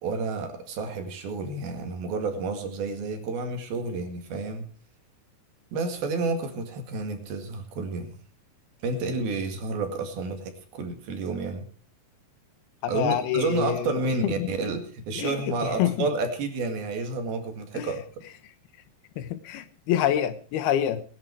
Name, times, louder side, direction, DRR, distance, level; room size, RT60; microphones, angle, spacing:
voice 1, 0.0-4.7 5.7-8.2 8.8-11.7 12.9-18.3, right 3 dB, 80° right, 5 dB, 4.0 m, -30 dB
voice 2, 12.8-14.5 15.2-16.1 17.7-17.9 19.2-21.0, left 10 dB, 90° left, 11 dB, 3.1 m, -27 dB
20.5 x 10.5 x 4.7 m, 0.40 s
omnidirectional pair, 4.3 m